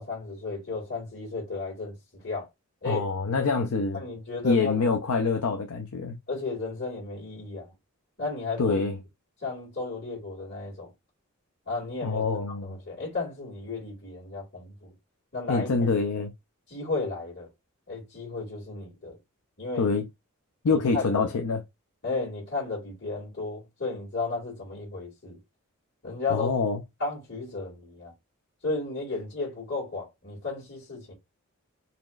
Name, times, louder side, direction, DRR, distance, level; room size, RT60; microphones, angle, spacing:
voice 1, 0.0-2.5 2.8-3.0 3.9-5.0 6.3-7.7 8.2-8.8 9.4-10.9 11.7-12.2 12.6-14.9 15.3-15.8 16.7-17.5 17.9-19.2 19.6-19.9 20.7-21.3 22.0-25.4 26.0-26.5 27.0-28.1 28.6-31.1, left 3 dB, 50° left, 2.2 m, -33 dB
voice 2, 2.8-4.0 4.4-6.2 8.6-9.0 12.0-12.7 15.5-16.3 19.8-20.0 20.6-21.6 26.3-26.8, left 4 dB, 85° left, 0.5 m, -25 dB
4.2 x 3.0 x 2.4 m
head